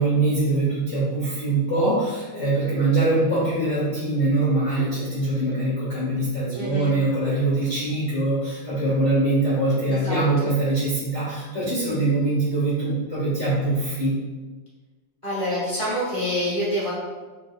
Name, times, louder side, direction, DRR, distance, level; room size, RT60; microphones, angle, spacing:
voice 1, 0.0-14.1, right 2 dB, 50° left, -8 dB, 0.9 m, -23 dB
voice 2, 6.5-6.9 9.8-10.5 15.2-16.9, equal, 15° right, -8 dB, 0.9 m, -27 dB
3.5 x 3.0 x 3.5 m, 1.3 s
omnidirectional pair, 2.4 m